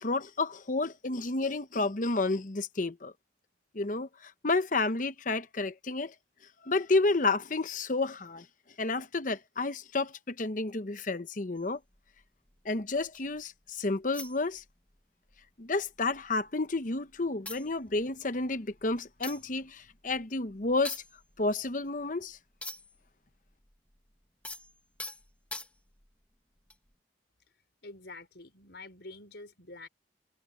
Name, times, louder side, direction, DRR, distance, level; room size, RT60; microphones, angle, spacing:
voice 1, 0.0-3.1 3.7-6.1 6.6-8.4 8.8-11.8 12.6-14.6 15.6-21.0 21.4-22.4, left 3 dB, 45° left, 0.9 m, -30 dB
sound 1, 11.6-13.4 14.1-15.0 15.3-15.5 15.8-16.7 17.1-17.2 17.5-23.1 23.3-26.1 26.7-26.9, left 2 dB, 5° left, 1.2 m, -45 dB
voice 2, 27.8-29.9, left 2 dB, 65° left, 5.1 m, -47 dB
head